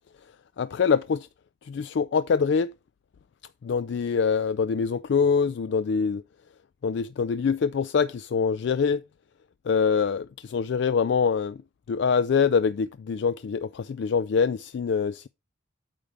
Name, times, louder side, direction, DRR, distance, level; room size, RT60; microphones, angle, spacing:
voice 1, 0.6-1.3 1.6-2.7 3.6-6.2 6.8-9.0 9.7-11.6 11.9-15.3, left 6 dB, 55° left, 0.3 m, -24 dB
8.9 x 3.4 x 6.6 m
head